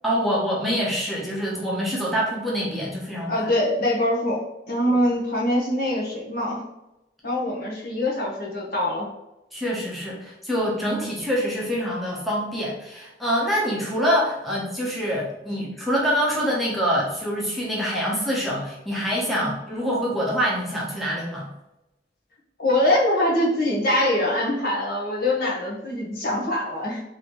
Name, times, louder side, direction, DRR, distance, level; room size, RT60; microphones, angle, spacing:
voice 1, 0.0-3.3 4.9-5.0 9.5-21.5, equal, ahead, -5 dB, 0.8 m, -25 dB
voice 2, 3.3-6.6 7.2-9.1 19.3-19.5 22.6-27.0, left 1 dB, 55° left, -3 dB, 1.0 m, -23 dB
3.9 x 2.8 x 3.1 m, 0.92 s
head